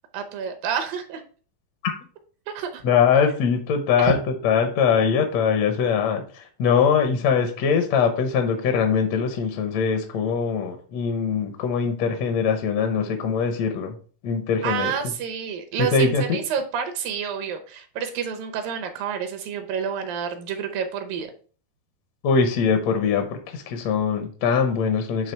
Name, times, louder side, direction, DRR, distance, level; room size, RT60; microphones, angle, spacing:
voice 1, 0.1-1.2 2.5-2.8 4.0-4.1 14.6-21.3, right 7 dB, 75° right, 6 dB, 2.5 m, -29 dB
voice 2, 2.8-4.2 4.4-14.0 14.2-14.9 15.8-16.2 22.2-25.3, left 6 dB, 75° left, 6 dB, 1.5 m, -22 dB
8.8 x 3.2 x 4.5 m, 0.41 s
omnidirectional pair, 4.2 m